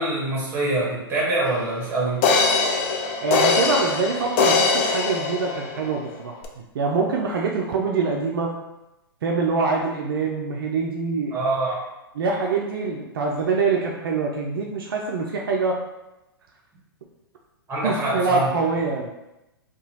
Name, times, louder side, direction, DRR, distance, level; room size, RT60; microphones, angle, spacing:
voice 1, 0.0-2.2 11.3-11.8 17.7-18.5, right 2 dB, 20° right, -4 dB, 1.0 m, -24 dB
sound 1, 1.5-1.6 2.2-6.0 6.4-6.5, left 4 dB, 35° left, 0.4 m, -22 dB
voice 2, 3.2-6.4 6.7-8.5 9.2-11.4 12.1-15.8 17.8-19.1, right 4 dB, 65° right, 0 dB, 0.4 m, -24 dB
2.8 x 2.2 x 2.8 m, 0.96 s
hypercardioid pair, 115°, 13 cm